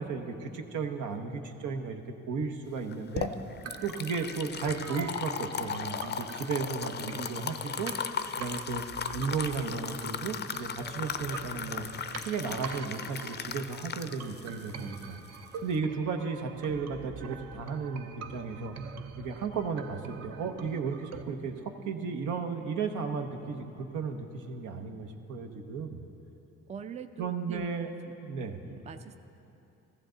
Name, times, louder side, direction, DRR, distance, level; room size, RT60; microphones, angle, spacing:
voice 1, 0.0-2.0 2.3-3.3 3.8-7.9 8.4-8.8 9.1-11.9 12.2-15.2 15.6-18.8 19.2-26.0 27.2-27.9 28.1-28.6, right 5 dB, 80° right, 5 dB, 1.0 m, -34 dB
sound 1, 2.8-15.8, left 6 dB, 35° left, 0.5 m, -37 dB
sound 2, 3.2-21.2, right 6 dB, 60° right, 0.7 m, -45 dB
voice 2, 26.7-27.9 28.6-29.2, right 6 dB, 25° right, 9 dB, 0.4 m, -42 dB
15.0 x 14.5 x 3.9 m, 2.9 s
cardioid pair, 90°, 30 cm